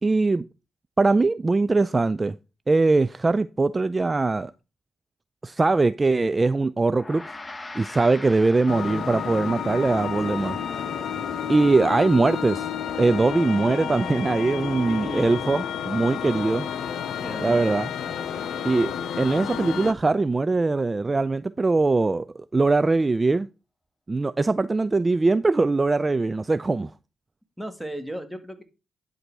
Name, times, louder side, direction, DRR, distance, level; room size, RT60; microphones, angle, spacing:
voice 1, 0.0-0.4 1.0-2.4 2.7-4.5 5.4-7.2 7.7-10.6 11.5-12.7 13.0-16.7 17.4-17.9 18.6-18.9 19.2-23.5 24.1-26.9, right 3 dB, 30° right, 0.3 m, -21 dB
Gong, 6.9-16.5, left 2 dB, 25° left, 0.9 m, -45 dB
sound 1, 8.7-19.9, left 8 dB, 75° left, 0.7 m, -31 dB
voice 2, 14.9-15.4 17.2-17.8 27.6-28.6, right 1 dB, ahead, 1.8 m, -35 dB
11.0 x 4.0 x 4.6 m
supercardioid pair, 50°, 0 cm